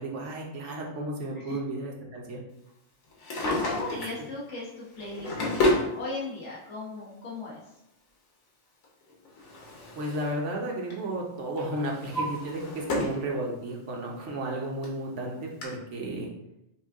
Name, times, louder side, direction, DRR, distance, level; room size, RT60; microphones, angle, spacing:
voice 1, 0.0-2.4 10.0-16.3, right 1 dB, 65° right, -1 dB, 1.2 m, -33 dB
Drawer open or close, 3.1-4.2 4.9-5.9 7.0-7.1 8.8-10.4 10.7-11.1 11.6-13.2 13.7-13.8 14.5-14.6 14.8-14.9 15.6-15.7, left 1 dB, 85° left, 1.5 m, -30 dB
voice 2, 3.4-7.8, left 2 dB, 60° left, -6 dB, 1.4 m, -37 dB
6.1 x 2.4 x 3.5 m, 0.83 s
omnidirectional pair, 1.4 m